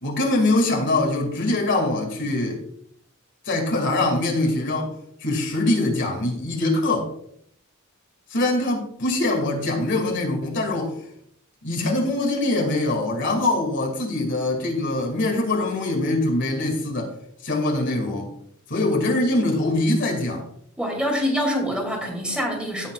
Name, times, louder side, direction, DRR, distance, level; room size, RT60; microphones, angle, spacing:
voice 1, 0.0-2.6 3.4-4.9 5.2-7.1 8.3-10.9 11.6-17.1 17.4-18.3 18.7-20.5, left 2 dB, 60° left, 1 dB, 2.3 m, -23 dB
voice 2, 20.8-22.9, equal, 5° right, 0 dB, 2.6 m, -25 dB
16.5 x 7.3 x 2.4 m, 0.68 s
head